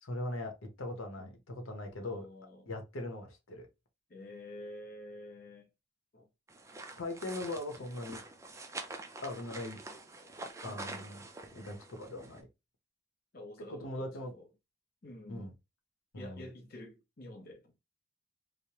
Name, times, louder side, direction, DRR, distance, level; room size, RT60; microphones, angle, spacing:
voice 1, 0.0-2.3 2.7-3.7 7.0-8.2 9.2-9.8 10.6-11.2 11.5-12.5 13.7-14.3 15.3-15.5 16.1-16.5, left 1 dB, 90° left, 0.9 m, -40 dB
voice 2, 2.0-2.7 4.1-5.7 6.1-6.3 10.6-11.1 13.3-14.5 15.0-15.6 16.1-17.7, left 1 dB, 45° left, 0.8 m, -49 dB
sound 1, 6.5-12.4, right 2 dB, 15° right, 0.3 m, -46 dB
3.1 x 2.1 x 2.8 m
head